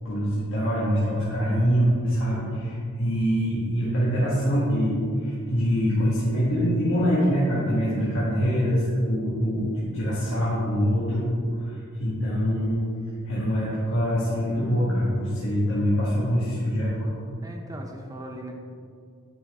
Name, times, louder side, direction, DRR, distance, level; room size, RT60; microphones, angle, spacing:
voice 1, 0.0-12.8 13.2-17.0, equal, 60° left, -9 dB, 1.7 m, -24 dB
voice 2, 17.4-18.5, right 1 dB, 15° right, 2 dB, 0.8 m, -39 dB
10.0 x 5.8 x 3.7 m, 2.2 s
head